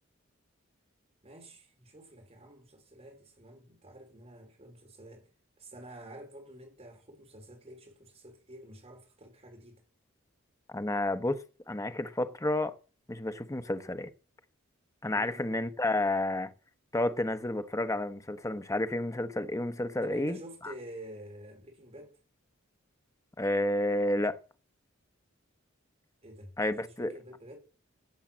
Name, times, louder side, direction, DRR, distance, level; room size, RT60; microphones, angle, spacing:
voice 1, 1.2-5.3 5.6-9.8 15.1-15.4 20.0-22.1 26.2-27.6, right 1 dB, 30° right, 4.5 m, -49 dB
voice 2, 10.7-11.4 11.7-12.8 13.1-14.1 15.0-16.5 16.9-20.4 20.6-20.7 23.4-24.4 26.6-27.1, left 1 dB, 15° left, 1.0 m, -30 dB
16.5 x 8.0 x 7.4 m
head